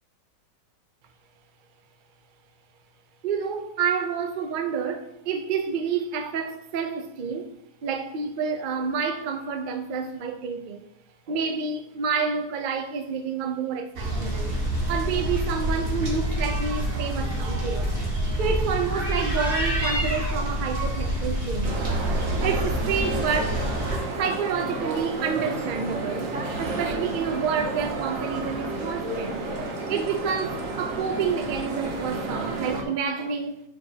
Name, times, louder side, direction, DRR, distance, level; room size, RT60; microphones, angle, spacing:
voice 1, 3.2-7.5 7.8-10.9 11.3-14.5 14.9-17.9 18.4-21.8 22.4-23.6 24.2-26.3 26.6-29.4 29.9-33.6, right 6 dB, 90° right, 0.4 m, -29 dB
sound 1, 14.0-24.0, right 1 dB, 35° right, 1.4 m, -27 dB
sound 2, 21.6-32.8, right 2 dB, 55° right, 1.2 m, -31 dB
9.6 x 5.1 x 2.8 m
omnidirectional pair, 1.9 m